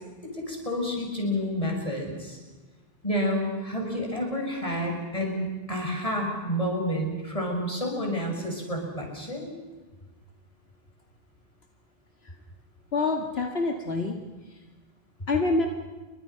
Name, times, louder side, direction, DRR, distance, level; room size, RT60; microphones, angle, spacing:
voice 1, 0.2-2.4 3.0-9.5, equal, 35° left, 1 dB, 6.5 m, -29 dB
voice 2, 12.9-14.1 14.4-14.6 15.3-15.7, left 3 dB, 80° left, 3 dB, 2.2 m, -26 dB
29.5 x 24.0 x 5.8 m, 1.3 s
omnidirectional pair, 1.0 m